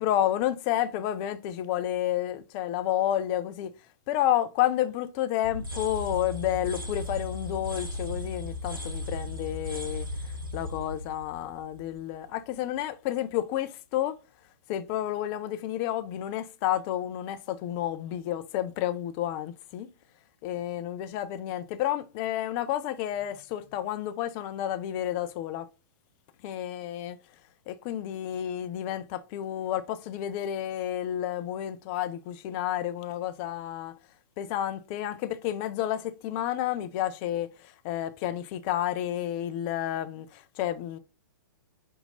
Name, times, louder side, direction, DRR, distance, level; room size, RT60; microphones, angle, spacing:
voice 1, 0.0-3.7 4.1-14.2 14.7-19.9 20.4-25.7 26.4-27.2 27.7-34.0 34.4-41.0, left 12 dB, 35° left, 0.4 m, -30 dB
sound 1, 5.4-12.3, left 1 dB, 85° right, 0.9 m, -36 dB
5.4 x 2.8 x 2.6 m
figure-of-eight pair, 110°, 11 cm